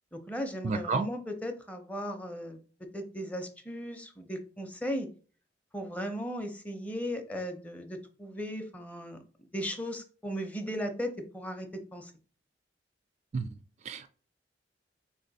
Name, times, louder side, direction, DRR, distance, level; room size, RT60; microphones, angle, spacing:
voice 1, 0.1-2.6 2.9-5.1 5.7-9.2 9.5-12.1, equal, 10° left, 0.6 m, -37 dB
voice 2, 0.6-1.1 13.3-13.5 13.9-14.1, right 4 dB, 40° right, 0.3 m, -30 dB
4.1 x 3.2 x 3.9 m
head